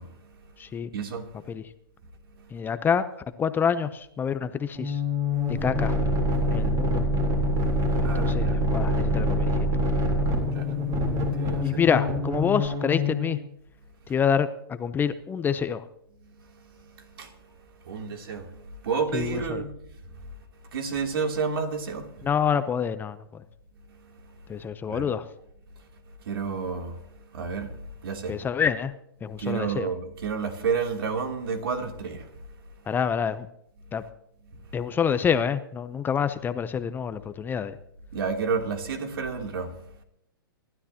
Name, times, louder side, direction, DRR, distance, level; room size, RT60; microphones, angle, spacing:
voice 1, 0.0-0.5 0.9-1.5 2.3-2.6 5.3-5.4 6.4-6.7 7.5-8.6 10.5-11.8 16.2-19.7 20.0-22.3 23.9-25.1 25.8-25.9 26.2-28.4 29.3-32.9 33.9-34.0 34.5-34.8 38.1-40.0, right 5 dB, 70° right, 3.0 m, -32 dB
voice 2, 0.6-0.9 1.5-1.6 2.5-3.0 3.4-5.0 5.5-6.0 6.5-7.0 8.0-9.6 11.6-13.4 14.1-15.9 19.1-19.6 22.2-23.4 24.5-25.3 28.3-28.9 29.2-29.9 32.9-33.5 33.9-34.0 34.7-37.8, left 7 dB, 15° left, 0.7 m, -27 dB
sound 1, 4.8-13.4, left 1 dB, 30° right, 3.5 m, -25 dB
26.0 x 12.5 x 2.9 m
hypercardioid pair, 130°, 13 cm